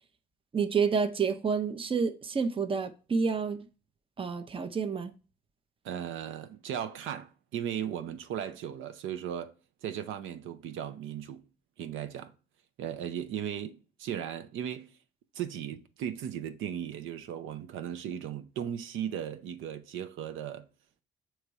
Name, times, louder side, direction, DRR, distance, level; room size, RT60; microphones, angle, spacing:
voice 1, 0.5-3.6 4.2-5.1, right 5 dB, 25° right, 0.6 m, -29 dB
voice 2, 5.8-9.5 9.8-11.4 11.8-12.3 12.8-14.9 15.3-20.7, right 9 dB, 85° right, 0.6 m, -37 dB
6.5 x 3.1 x 4.6 m
cardioid pair, 90°, 20 cm